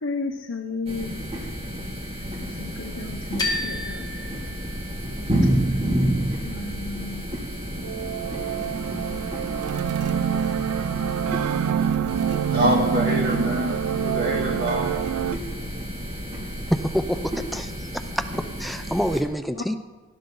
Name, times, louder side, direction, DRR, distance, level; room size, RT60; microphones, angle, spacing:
voice 1, 0.0-1.2 2.4-4.0 6.5-7.2, left 3 dB, 60° left, 2 dB, 1.0 m, -33 dB
sound 1, 0.9-19.2, equal, 25° right, 2.4 m, -30 dB
sound 2, 3.4-5.3, left 3 dB, 20° left, 1.5 m, -31 dB
sound 3, 7.8-15.4, right 8 dB, 85° right, 0.3 m, -26 dB
voice 2, 12.5-14.9, equal, 45° right, 1 dB, 2.2 m, -25 dB
voice 3, 16.7-19.7, equal, ahead, 8 dB, 0.4 m, -27 dB
19.0 x 11.5 x 3.9 m, 1.3 s
head